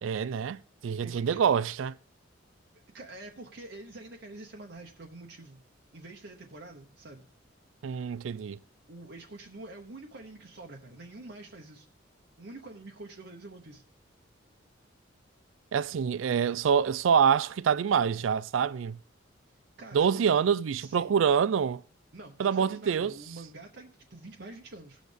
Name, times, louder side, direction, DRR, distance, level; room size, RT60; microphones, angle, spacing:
voice 1, 0.0-1.9 7.8-8.6 15.7-19.0 19.9-21.8 22.4-23.1, right 7 dB, 85° right, 0.4 m, -26 dB
voice 2, 1.0-1.4 2.9-5.6 5.9-7.3 8.9-11.9 12.4-13.8 19.8-20.5 20.8-21.2 22.1-25.0, right 2 dB, 60° right, 0.9 m, -46 dB
18.0 x 6.4 x 3.4 m
head